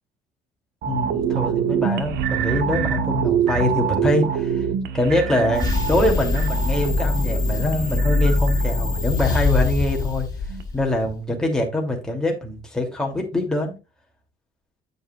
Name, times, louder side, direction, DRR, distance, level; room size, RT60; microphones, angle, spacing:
sound 1, 0.8-10.1 10.5-10.6, right 8 dB, 75° right, 1.3 m, -26 dB
voice 1, 0.9-4.7 4.9-10.3 10.7-13.8, left 1 dB, 5° left, 2.7 m, -24 dB
sound 2, 5.5-11.0, left 3 dB, 20° left, 3.9 m, -22 dB
9.0 x 7.9 x 2.3 m
cardioid pair, 110°, 17 cm